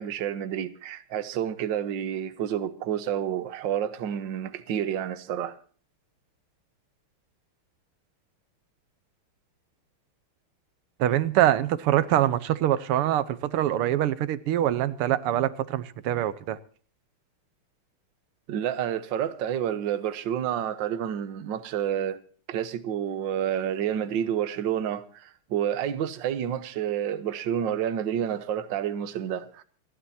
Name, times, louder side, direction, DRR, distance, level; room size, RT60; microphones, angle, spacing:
voice 1, 0.0-5.6 18.5-22.2 22.5-29.6, right 9 dB, 65° right, 1.7 m, -29 dB
voice 2, 11.0-16.6, right 12 dB, 90° right, 1.8 m, -24 dB
28.5 x 11.0 x 2.7 m
omnidirectional pair, 2.4 m